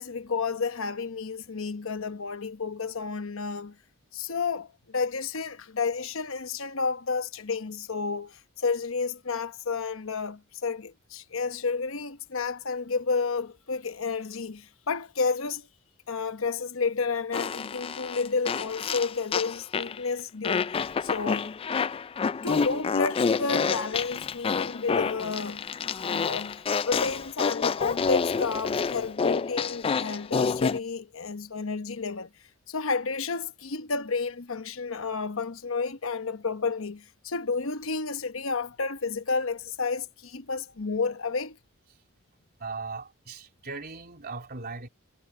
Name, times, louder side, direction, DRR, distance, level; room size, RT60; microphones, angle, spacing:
voice 1, 0.0-3.8 4.1-15.7 16.1-20.7 21.0-21.5 22.4-25.7 26.0-32.3 32.7-41.6, left 4 dB, 70° left, 1.0 m, -31 dB
Fart, 17.3-20.0 20.4-30.8, left 5 dB, 25° left, 0.3 m, -28 dB
voice 2, 42.6-44.9, right 4 dB, 50° right, 3.8 m, -38 dB
head